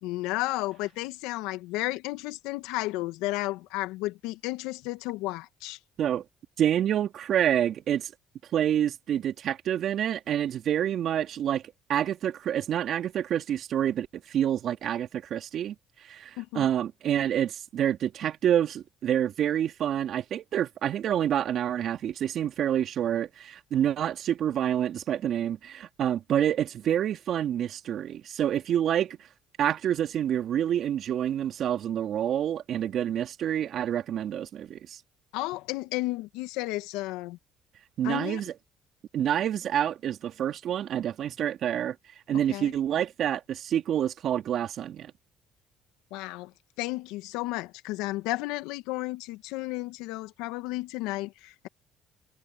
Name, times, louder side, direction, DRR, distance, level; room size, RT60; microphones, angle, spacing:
voice 1, 0.0-5.8 16.4-16.7 35.3-37.4 38.0-38.4 42.5-42.7 46.1-46.5 46.8-51.7, left 19 dB, 80° left, 2.0 m, -33 dB
voice 2, 6.6-8.1 8.5-11.6 11.9-15.7 16.0-29.2 29.6-35.0 38.0-38.5 39.1-41.9 42.3-45.1, right 10 dB, 60° right, 2.8 m, -27 dB
hypercardioid pair, 65°, 0 cm